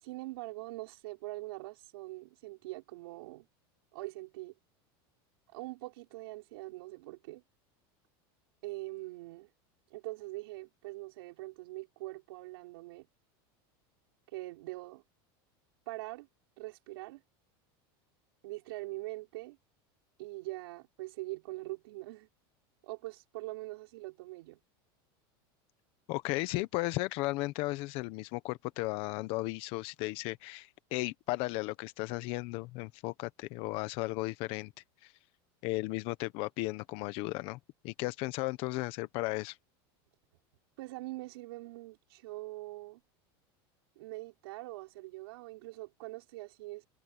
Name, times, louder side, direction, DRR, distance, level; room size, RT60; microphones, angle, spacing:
voice 1, 0.0-3.5 3.9-4.5 5.5-7.4 8.6-9.5 9.9-13.1 14.3-15.0 15.9-16.3 16.6-17.2 18.4-19.6 20.2-22.3 22.8-24.6 40.8-43.0 44.0-46.9, right 20 dB, 75° right, 5.8 m, -43 dB
voice 2, 26.1-34.7 35.0-35.1 35.6-37.6 37.8-39.6, left 21 dB, 45° left, 1.1 m, -35 dB
supercardioid pair, 160°, 13 cm